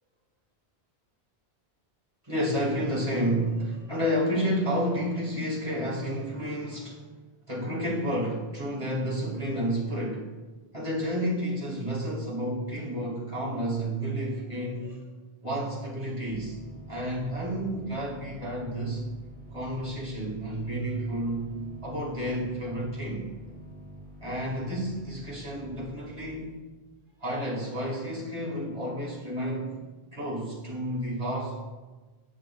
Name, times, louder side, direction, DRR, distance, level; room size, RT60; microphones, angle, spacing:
voice 1, 2.2-7.0 7.5-10.3 10.7-15.0 15.4-16.5 16.9-19.0 19.5-23.2 24.2-26.5 27.2-29.8 30.1-31.6, equal, 30° right, -6 dB, 1.9 m, -30 dB
sound 1, 16.2-26.6, equal, 5° left, 1.8 m, -47 dB
9.6 x 6.2 x 2.2 m, 1.3 s
omnidirectional pair, 1.1 m